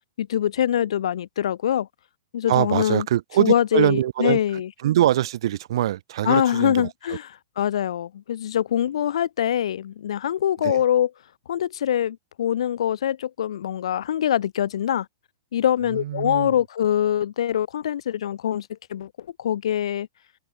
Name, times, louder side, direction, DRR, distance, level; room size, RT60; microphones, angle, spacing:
voice 1, 0.2-1.9 2.3-3.1 3.4-4.7 6.2-7.3 7.6-11.1 11.5-15.1 15.5-19.1 19.4-20.1, left 10 dB, 75° left, 0.4 m, -24 dB
voice 2, 2.5-4.4 4.8-6.9 10.6-10.8 15.9-16.5, right 13 dB, 60° right, 0.4 m, -23 dB
hypercardioid pair, 165°, 3 cm